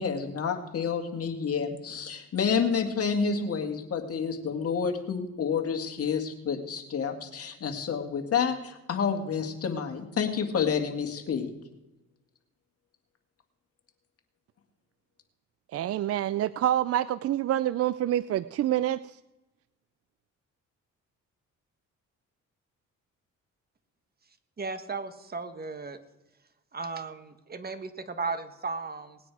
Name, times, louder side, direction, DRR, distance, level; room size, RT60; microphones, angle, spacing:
voice 1, 0.0-11.5, left 6 dB, 50° left, 2.1 m, -29 dB
voice 2, 15.7-19.0, right 12 dB, 50° right, 0.4 m, -27 dB
voice 3, 24.6-26.0 26.7-29.2, right 4 dB, 30° right, 1.3 m, -35 dB
19.0 x 9.3 x 4.8 m
cardioid pair, 90°, 30 cm